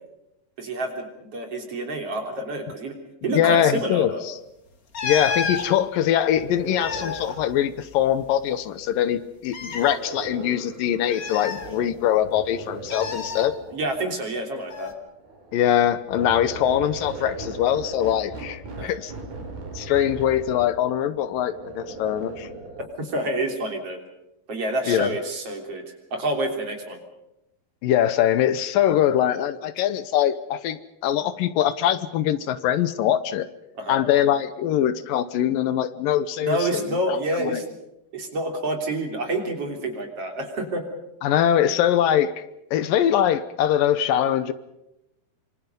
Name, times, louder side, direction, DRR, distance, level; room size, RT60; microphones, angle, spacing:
voice 1, 0.6-2.9 3.2-4.2 13.7-14.9 18.8-19.0 23.0-24.0 24.5-25.8 26.1-27.0 33.7-34.0 36.4-37.6 38.1-40.9, right 1 dB, 40° right, 4 dB, 4.1 m, -28 dB
voice 2, 3.3-4.3 5.0-13.5 15.5-19.1 19.7-22.5 24.9-25.1 27.8-33.5 33.9-36.8 37.4-37.5 41.2-42.4 42.7-44.5, left 10 dB, 80° left, 13 dB, 2.6 m, -22 dB
sound 1, 4.9-5.7 6.6-8.3 8.5-8.6 9.4-10.0 11.1-12.1 12.9-13.5 14.7-14.9, left 5 dB, 35° left, 1.5 m, -30 dB
sound 2, 6.3-9.1 9.8-12.0 12.2-14.0 15.1-22.9, right 3 dB, 90° right, 6.4 m, -39 dB
26.0 x 25.5 x 5.4 m, 0.88 s
omnidirectional pair, 4.1 m